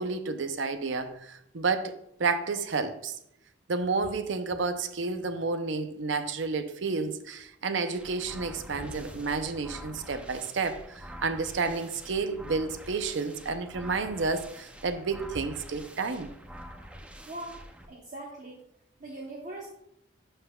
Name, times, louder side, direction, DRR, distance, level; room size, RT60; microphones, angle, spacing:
voice 1, 0.0-3.2 3.7-16.3, right 4 dB, 75° right, 0.6 m, -31 dB
sound 1, 8.0-17.8, equal, 5° right, 0.5 m, -46 dB
Thunder, 8.2-10.7, equal, 55° left, 1.5 m, -48 dB
voice 2, 17.3-17.6 17.9-18.6 19.0-19.7, right 2 dB, 40° right, 0.9 m, -40 dB
11.0 x 5.6 x 2.3 m
head